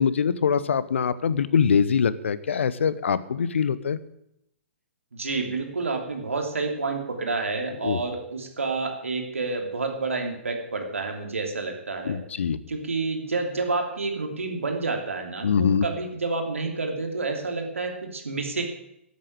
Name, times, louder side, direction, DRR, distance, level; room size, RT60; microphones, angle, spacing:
voice 1, 0.0-4.0 7.8-8.0 12.0-12.6 15.4-15.8, left 6 dB, 65° left, 16 dB, 0.9 m, -23 dB
voice 2, 5.1-12.2 12.7-18.6, right 3 dB, 75° right, 3 dB, 3.0 m, -29 dB
12.5 x 8.5 x 9.0 m, 0.80 s
figure-of-eight pair, 120°, 7 cm